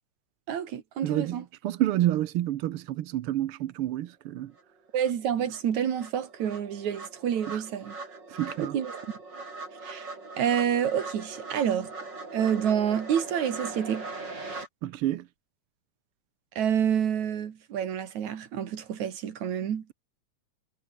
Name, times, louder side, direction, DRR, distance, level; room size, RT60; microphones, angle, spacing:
voice 1, 0.5-1.4 4.9-8.0 8.6-9.0 9.8-10.1 10.4-11.9 12.3-14.1 16.6-19.8, right 9 dB, 65° right, 3.3 m, -28 dB
voice 2, 1.0-4.5 7.5-7.6 8.3-8.8 14.8-15.3, right 13 dB, 85° right, 1.2 m, -29 dB
sound 1, 4.6-4.7 5.0-14.7, right 3 dB, 35° right, 5.6 m, -41 dB
omnidirectional pair, 3.6 m